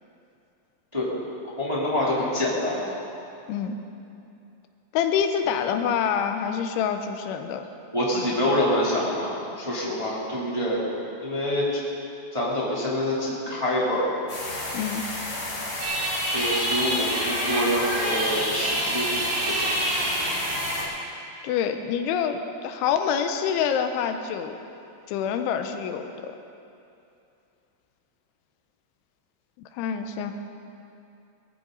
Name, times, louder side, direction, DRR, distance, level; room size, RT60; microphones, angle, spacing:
voice 1, 1.6-2.9 7.9-10.9 11.2-11.8 12.3-14.1 16.3-19.1 19.4-20.1, left 1 dB, 10° right, -7 dB, 2.1 m, -26 dB
voice 2, 4.9-7.7 14.7-15.0 21.4-24.6 25.1-26.3 29.7-30.3, left 8 dB, 90° left, 7 dB, 3.2 m, -26 dB
sound 1, 14.3-20.8, left 2 dB, 35° left, 4.0 m, -32 dB
sound 2, 15.8-20.8, right 1 dB, 85° right, 5.9 m, -27 dB
22.0 x 14.0 x 4.0 m, 2.7 s
omnidirectional pair, 5.3 m